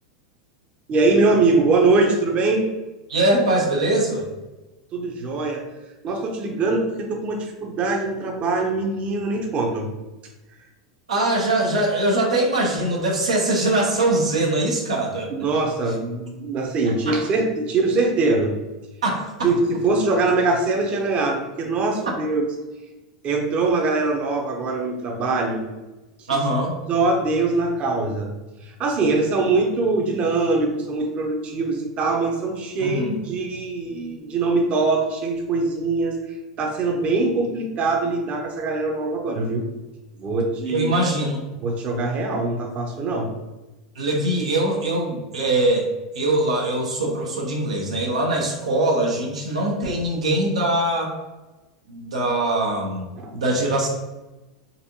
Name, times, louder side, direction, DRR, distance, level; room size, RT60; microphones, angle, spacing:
voice 1, 0.9-2.7 4.9-5.7 6.0-9.9 15.3-18.5 19.4-22.5 23.2-25.6 26.2-26.3 26.9-28.3 28.6-36.2 36.6-39.7 40.2-40.9 41.6-43.3 53.2-53.3, right 3 dB, 40° right, 1 dB, 0.7 m, -22 dB
voice 2, 3.1-4.3 11.1-15.3 17.1-17.2 19.0-19.3 26.3-26.7 32.8-33.1 40.7-41.4 44.0-45.9 46.1-51.1 51.9-53.9, right 1 dB, 90° right, -1 dB, 0.8 m, -22 dB
4.1 x 2.6 x 2.8 m, 1.1 s
hypercardioid pair, 100°, 3 cm